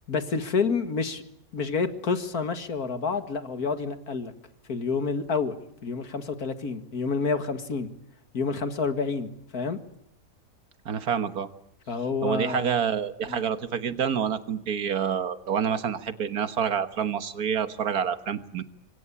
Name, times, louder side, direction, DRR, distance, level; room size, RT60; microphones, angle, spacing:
voice 1, 0.1-1.2 1.5-4.3 4.7-5.6 5.8-7.9 8.3-9.8 11.9-12.7 13.3-13.4, left 4 dB, 90° left, 9 dB, 2.5 m, -28 dB
voice 2, 10.9-11.5 12.2-18.6, right 7 dB, 90° right, 12 dB, 1.9 m, -27 dB
26.0 x 24.5 x 8.7 m, 0.75 s
omnidirectional pair, 1.6 m